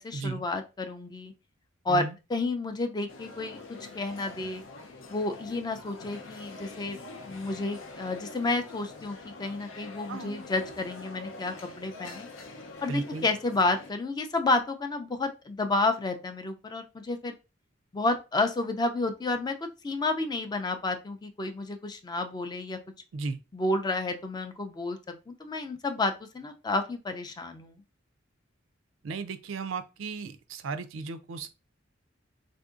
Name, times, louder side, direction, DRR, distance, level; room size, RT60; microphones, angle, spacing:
voice 1, 0.0-1.3 1.9-2.0 2.3-3.6 3.9-4.6 5.1-7.0 7.3-12.3 12.8-17.3 17.9-19.6 19.8-22.8 23.5-25.0 25.3-27.8, left 2 dB, 20° left, 0.3 m, -30 dB
sound 1, 3.1-13.9, left 3 dB, 90° left, 0.6 m, -45 dB
voice 2, 12.9-13.3 23.1-23.4 29.0-31.5, right 4 dB, 80° right, 0.4 m, -35 dB
3.6 x 2.6 x 2.4 m
head